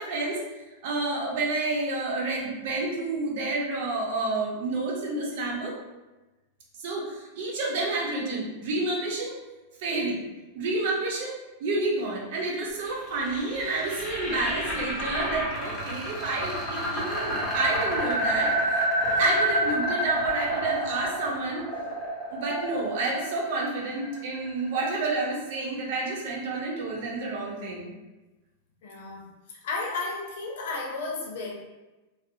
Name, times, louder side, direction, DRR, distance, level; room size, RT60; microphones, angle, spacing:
voice 1, 0.0-5.8 6.8-9.4 9.8-10.2 10.5-21.6 22.3-27.9, right 2 dB, 65° right, -2 dB, 0.7 m, -29 dB
sound 1, 12.9-24.9, equal, 15° left, 1.1 m, -29 dB
voice 2, 28.8-31.5, left 3 dB, 70° left, -1 dB, 0.6 m, -33 dB
2.6 x 2.1 x 2.5 m, 1.1 s
supercardioid pair, 140°, 0 cm